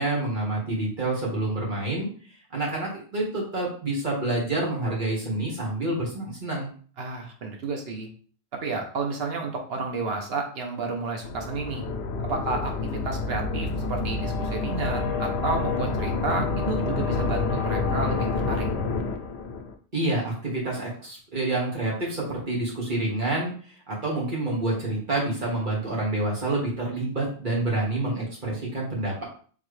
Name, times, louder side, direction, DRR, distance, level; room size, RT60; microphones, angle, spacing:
voice 1, 0.0-2.1 2.5-6.7 19.9-29.2, right 2 dB, 50° right, -3 dB, 1.7 m, -28 dB
voice 2, 7.0-8.1 8.6-11.8 12.2-18.7, right 3 dB, 70° right, 2 dB, 1.1 m, -31 dB
sound 1, 11.2-19.7, left 3 dB, 90° left, 0.9 m, -28 dB
4.0 x 3.3 x 3.2 m, 0.43 s
omnidirectional pair, 1.1 m